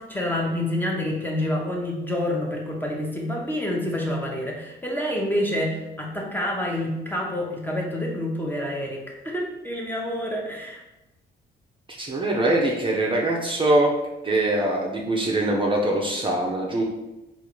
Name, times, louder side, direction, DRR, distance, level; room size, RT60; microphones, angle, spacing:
voice 1, 0.0-10.8, left 1 dB, 10° left, -1 dB, 0.7 m, -28 dB
voice 2, 11.9-13.9 14.2-16.8, right 1 dB, 25° right, -2 dB, 0.5 m, -23 dB
3.6 x 2.5 x 3.0 m, 0.97 s
cardioid pair, 90°, 20 cm